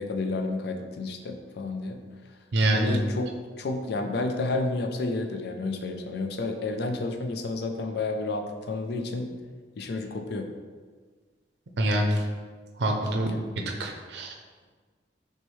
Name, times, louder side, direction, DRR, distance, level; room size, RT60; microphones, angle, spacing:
voice 1, 0.0-2.0 2.7-9.3 9.8-10.5, left 2 dB, 60° left, 4 dB, 0.4 m, -30 dB
voice 2, 2.5-3.0 11.8-12.2 12.8-13.3 13.8-14.3, right 1 dB, 65° right, 2 dB, 0.5 m, -25 dB
6.1 x 2.2 x 3.1 m, 1.5 s
head